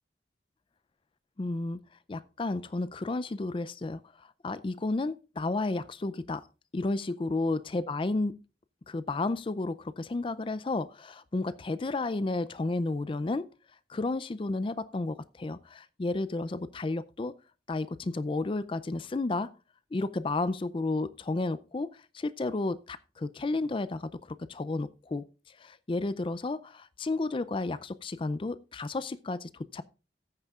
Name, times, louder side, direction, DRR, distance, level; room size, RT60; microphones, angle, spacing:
voice 1, 1.4-1.8 2.1-4.0 4.4-6.5 6.7-8.4 8.9-13.5 13.9-17.3 17.7-19.5 19.9-29.8, left 2 dB, 30° left, 0.4 m, -32 dB
14.5 x 9.2 x 2.4 m
head